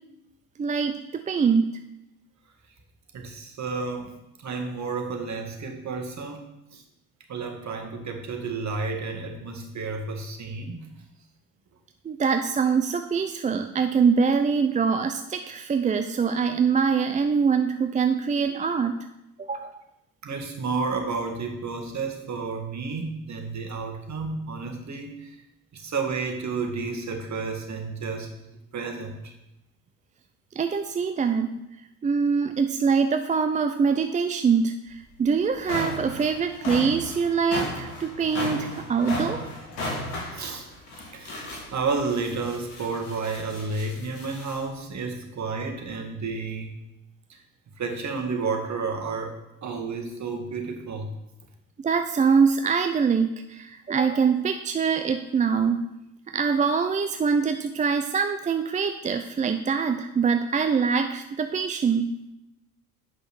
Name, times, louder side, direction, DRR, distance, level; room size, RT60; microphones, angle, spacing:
voice 1, 0.6-1.8 12.0-19.1 19.4-19.8 30.6-31.6 32.0-39.5 51.8-55.9 56.3-62.1, right 5 dB, 20° right, 8 dB, 0.4 m, -24 dB
voice 2, 3.1-4.1 4.4-6.8 7.3-10.9 20.2-25.4 25.7-28.4 28.7-29.4 40.3-40.7 41.1-46.8 47.3-47.4 47.8-51.1, right 4 dB, 40° right, 3 dB, 1.9 m, -31 dB
sound 1, 34.9-35.0 35.4-44.6, left 1 dB, 75° left, 2.5 m, -35 dB
8.1 x 5.6 x 6.1 m, 0.90 s
hypercardioid pair, 60°, 44 cm